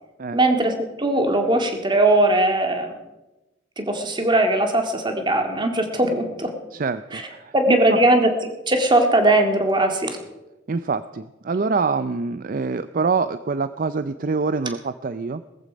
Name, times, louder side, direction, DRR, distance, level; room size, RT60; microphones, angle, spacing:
voice 1, 0.3-2.9 3.8-6.5 7.1-7.2 7.5-8.3 8.7-10.2, right 1 dB, 25° right, 5 dB, 2.0 m, -19 dB
voice 2, 6.7-8.0 10.7-15.4, right 4 dB, 45° right, 13 dB, 0.4 m, -25 dB
18.5 x 14.0 x 5.1 m, 1.0 s
head